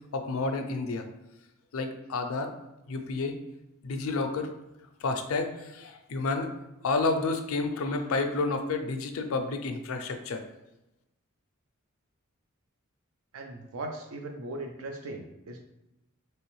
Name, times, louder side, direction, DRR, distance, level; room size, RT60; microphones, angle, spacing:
voice 1, 0.1-1.0 1.7-2.5 2.9-3.3 3.8-4.5 5.0-6.5 6.8-10.4, left 3 dB, 70° left, 5 dB, 0.4 m, -30 dB
voice 2, 13.3-15.6, right 2 dB, 70° right, 4 dB, 0.5 m, -39 dB
3.2 x 3.0 x 3.0 m, 0.94 s
head